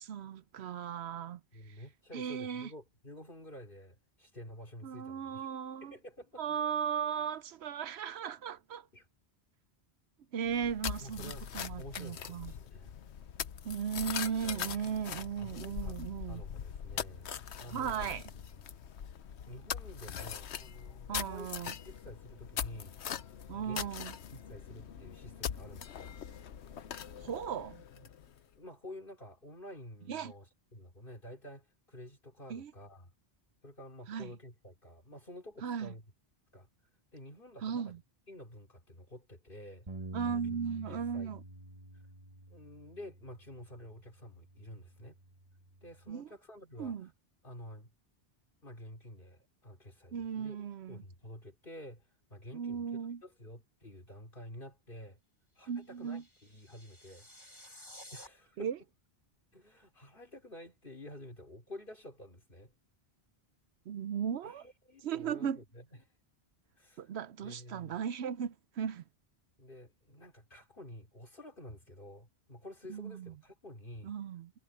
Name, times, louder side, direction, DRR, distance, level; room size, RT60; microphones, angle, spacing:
voice 1, 0.0-1.8 2.1-2.7 4.8-5.9 6.4-8.9 10.3-12.5 13.6-16.4 17.7-18.3 21.1-21.7 23.5-24.1 27.2-27.8 30.1-30.3 32.5-32.7 34.1-34.3 35.6-35.9 37.6-38.0 40.1-41.4 46.1-46.3 46.8-47.1 50.1-51.0 52.5-53.2 55.7-56.2 58.6-58.8 63.9-64.6 65.0-65.6 67.0-69.0 72.9-73.3 74.0-74.6, right 7 dB, 75° right, 0.9 m, -37 dB
voice 2, 1.5-5.5 5.8-6.4 8.9-9.1 11.0-11.5 11.8-13.0 14.4-14.9 15.4-16.0 16.3-17.3 17.6-18.6 19.5-23.2 23.5-26.2 28.0-28.1 28.5-30.5 30.7-33.1 33.6-36.0 36.5-36.7 37.1-37.9 38.3-39.9 40.2-40.6 40.9-41.3 42.5-45.2 45.8-46.9 47.4-47.9 48.6-50.6 50.9-52.0 52.3-52.8 53.2-55.2 55.6-57.3 58.1-58.7 59.5-62.7 64.4-65.8 66.8-67.1 67.4-68.0 69.6-74.1, left 1 dB, 50° left, 4.4 m, -50 dB
sound 1, 10.5-28.4, left 8 dB, 80° left, 1.1 m, -42 dB
Bass guitar, 39.9-46.1, right 2 dB, 30° right, 1.6 m, -49 dB
sound 2, 55.6-58.3, left 1 dB, 25° left, 3.5 m, -53 dB
omnidirectional pair, 1.1 m